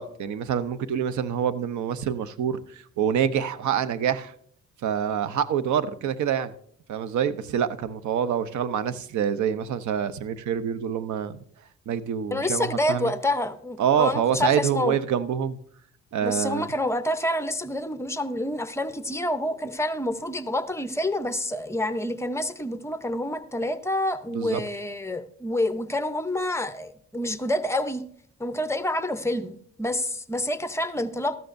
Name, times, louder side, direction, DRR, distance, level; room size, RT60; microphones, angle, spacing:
voice 1, 0.0-4.3 4.8-6.5 6.9-11.4 11.9-13.1 13.8-15.6 16.1-16.7 24.3-24.6, right 8 dB, 70° right, 0.8 m, -26 dB
voice 2, 12.3-15.0 16.2-28.0 28.4-31.4, left 1 dB, 10° left, 0.8 m, -28 dB
14.0 x 13.0 x 2.6 m
cardioid pair, 90°, 30 cm